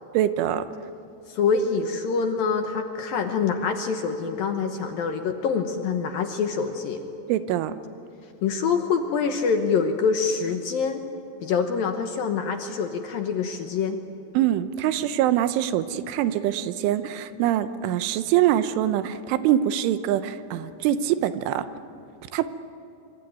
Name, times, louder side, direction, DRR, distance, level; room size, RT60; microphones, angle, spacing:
voice 1, 0.1-0.6 7.3-7.7 14.3-21.6 22.3-22.5, right 12 dB, 90° right, 11 dB, 3.4 m, -24 dB
voice 2, 1.3-7.0 8.4-11.0 11.4-14.0, left 5 dB, 70° left, 5 dB, 2.4 m, -25 dB
25.0 x 25.0 x 9.3 m, 2.7 s
omnidirectional pair, 5.4 m